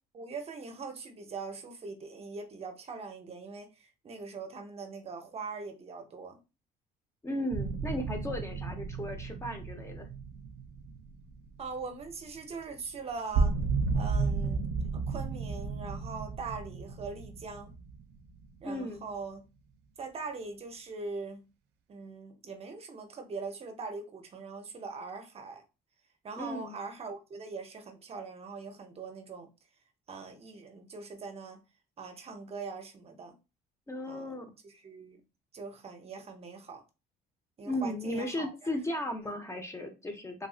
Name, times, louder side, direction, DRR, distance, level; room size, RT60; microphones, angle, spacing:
voice 1, 0.1-6.4 11.6-13.6 13.9-14.6 14.9-17.7 18.6-19.4 20.0-21.5 21.9-25.6 26.2-29.5 30.1-31.6 32.0-33.3 34.1-34.4 34.6-35.2 35.5-36.8 37.6-38.8 39.3-39.4, right 4 dB, 35° right, 0.6 m, -42 dB
voice 2, 7.2-10.1 18.6-19.0 26.4-26.8 33.9-34.5 37.6-40.5, left 1 dB, 15° left, 0.6 m, -35 dB
sound 1, 7.5-12.4 12.7-12.8 13.1-18.6, right 4 dB, 85° right, 0.4 m, -33 dB
3.2 x 2.6 x 2.4 m
cardioid pair, 110°, 17 cm